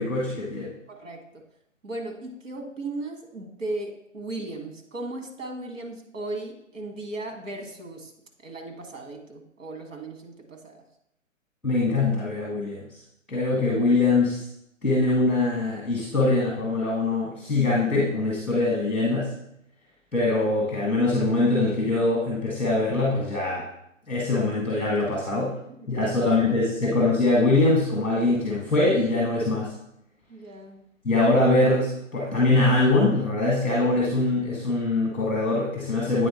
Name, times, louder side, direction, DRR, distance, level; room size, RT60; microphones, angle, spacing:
voice 1, 0.0-0.7 11.6-12.8 13.3-14.4 14.8-19.3 20.1-23.6 24.1-25.5 25.9-29.7 31.0-36.3, left 2 dB, ahead, -12 dB, 0.4 m, -23 dB
voice 2, 0.9-1.4 1.8-8.1 8.4-10.8 25.8-26.4 26.8-26.9 30.3-30.8, right 2 dB, 70° right, 3 dB, 1.7 m, -36 dB
8.5 x 3.5 x 4.2 m, 0.76 s
figure-of-eight pair, 145°, 39 cm